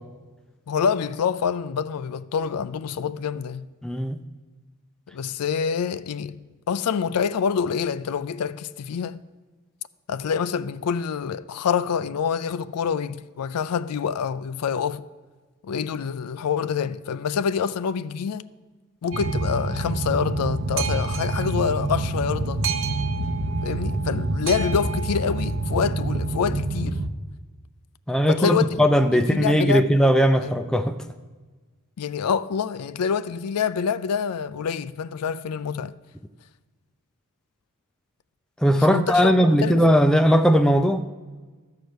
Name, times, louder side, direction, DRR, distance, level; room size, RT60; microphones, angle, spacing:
voice 1, 0.7-3.7 5.1-9.2 10.1-15.1 15.6-18.5 19.0-22.7 23.6-27.0 28.3-28.7 29.1-29.8 30.4-30.6 32.0-35.9 38.7-39.8, left 6 dB, 85° left, 0.4 m, -26 dB
voice 2, 3.8-4.2 28.1-31.0 38.6-41.0, equal, 5° left, 0.4 m, -19 dB
Boat Water vehicle, 19.1-27.1, right 2 dB, 60° right, 0.7 m, -26 dB
13.0 x 4.9 x 7.9 m
head